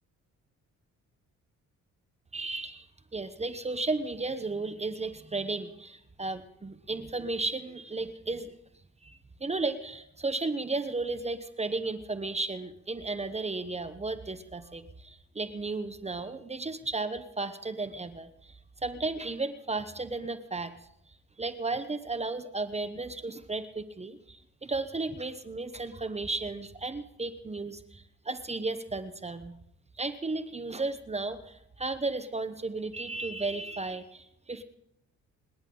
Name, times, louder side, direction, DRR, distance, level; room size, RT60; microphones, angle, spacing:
voice 1, 2.3-2.9 3.1-8.5 9.0-20.7 21.4-29.6 30.0-34.6, right 3 dB, 20° right, 10 dB, 1.0 m, -34 dB
29.0 x 10.5 x 3.9 m, 0.78 s
cardioid pair, 90°, 30 cm